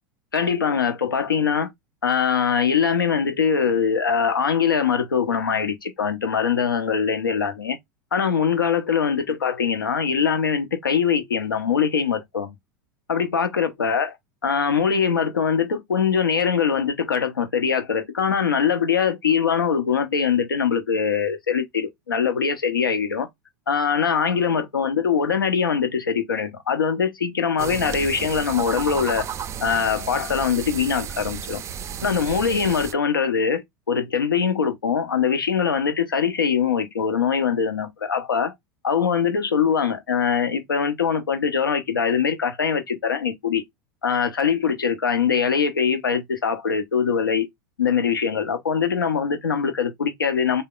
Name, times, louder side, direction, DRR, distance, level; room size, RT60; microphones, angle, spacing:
voice 1, 0.3-1.7 2.0-7.8 8.1-12.5 13.1-14.1 14.4-23.3 23.7-29.3 29.6-31.6 32.0-38.5 38.8-43.6 44.0-47.5 47.8-50.6, left 6 dB, 85° left, 0.7 m, -22 dB
sound 1, 27.6-32.9, right 8 dB, 25° right, 0.4 m, -33 dB
3.5 x 2.1 x 3.8 m
hypercardioid pair, 90°, 11 cm